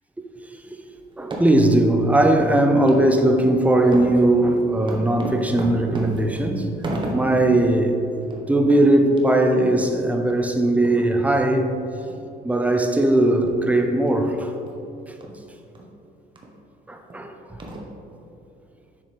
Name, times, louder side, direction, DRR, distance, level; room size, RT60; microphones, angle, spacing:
High-heeled shoe, 1.1-1.7 2.2-2.3 2.9-3.0 3.4-3.6 3.9-7.5 7.9-8.0 8.2-8.4 8.7-8.8 9.2-9.3 9.8-9.9 10.3-10.4 10.8-11.0 11.4-11.5 12.1-12.2 12.7-12.8 13.5-13.7 14.1-14.2 14.7-14.8 15.2-15.3 15.8-15.9 16.4-16.5 17.1-17.2 17.6-18.2, right 1 dB, 30° right, 1.1 m, -33 dB
voice 1, 1.2-6.7 7.1-8.0 8.5-11.7 12.4-14.5 16.9-17.6, right 1 dB, 10° right, 0.6 m, -19 dB
7.4 x 6.1 x 3.4 m
cardioid pair, 110°, 17 cm